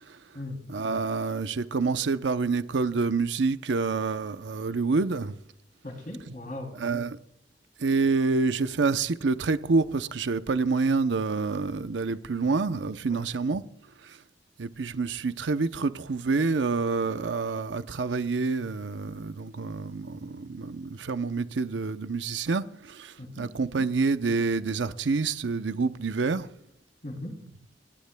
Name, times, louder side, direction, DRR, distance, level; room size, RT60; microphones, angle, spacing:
voice 1, 0.7-5.4 6.8-7.2 7.8-13.6 14.0-14.2 14.6-26.5, right 4 dB, 85° right, 0.7 m, -27 dB
voice 2, 5.8-6.7 12.4-12.5 13.1-13.2 23.2-23.5 27.0-27.3, left 1 dB, 50° left, 3.0 m, -38 dB
27.5 x 11.5 x 2.2 m
head